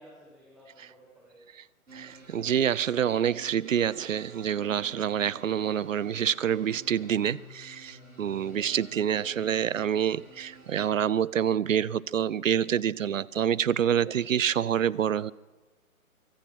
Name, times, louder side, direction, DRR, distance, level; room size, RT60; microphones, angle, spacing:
voice 1, 0.0-1.4 8.2-8.7 14.0-14.4, equal, ahead, -4 dB, 1.0 m, -55 dB
sound 1, 1.9-10.8, right 2 dB, 85° right, 4.9 m, -51 dB
voice 2, 2.3-7.4 8.2-15.3, right 9 dB, 65° right, 23 dB, 0.6 m, -26 dB
23.5 x 9.0 x 6.0 m, 1.2 s
figure-of-eight pair, 145°, 43 cm